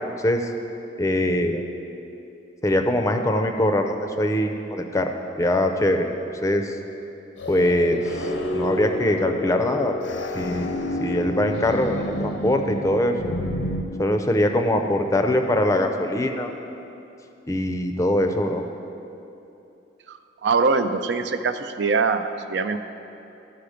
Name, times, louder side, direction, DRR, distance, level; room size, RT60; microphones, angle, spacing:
voice 1, 1.0-1.6 2.6-5.1 5.4-6.6 7.5-9.9 10.4-10.7 11.0-13.3 14.0-16.5 17.5-18.6, left 1 dB, 15° left, 5 dB, 0.5 m, -22 dB
sound 1, 7.4-13.8, left 1 dB, 85° left, 0.7 m, -29 dB
voice 2, 20.1-22.8, right 4 dB, 70° right, 9 dB, 0.4 m, -23 dB
12.0 x 5.8 x 5.0 m, 2.8 s
head